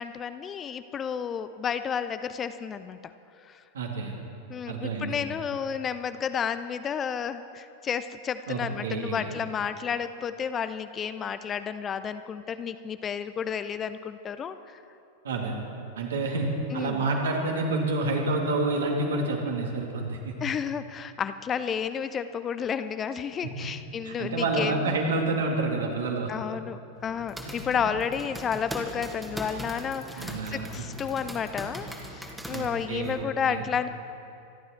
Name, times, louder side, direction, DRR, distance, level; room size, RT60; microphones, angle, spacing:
voice 1, 0.0-3.1 3.5-3.6 4.5-14.8 16.7-17.1 20.4-24.8 26.3-33.9, left 7 dB, 25° left, 12 dB, 0.6 m, -31 dB
voice 2, 3.7-4.1 4.7-5.1 8.5-9.3 15.2-15.5 16.0-16.5 16.7-20.3 23.6-23.7 24.0-26.3 27.4-27.9 30.2-30.7 32.5-33.7, right 3 dB, 65° right, 1 dB, 2.5 m, -29 dB
sound 1, 27.0-33.2, equal, 5° right, 1.9 m, -40 dB
26.0 x 12.0 x 4.4 m, 2.7 s
figure-of-eight pair, 90°, 0 cm